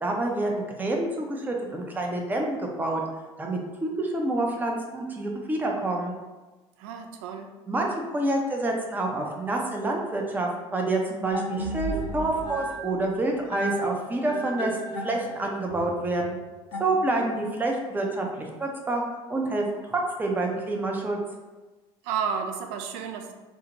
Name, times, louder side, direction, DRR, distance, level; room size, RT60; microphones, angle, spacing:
voice 1, 0.0-3.0 3.4-6.1 7.7-14.7 15.0-16.4 16.8-19.0 19.3-21.2, right 2 dB, 15° right, 0 dB, 0.5 m, -28 dB
voice 2, 6.8-7.5 22.0-23.3, right 6 dB, 65° right, 5 dB, 0.4 m, -31 dB
sound 1, 11.3-17.5, right 1 dB, 65° left, 0.6 m, -34 dB
2.6 x 2.0 x 2.9 m, 1.2 s
hypercardioid pair, 65°, 14 cm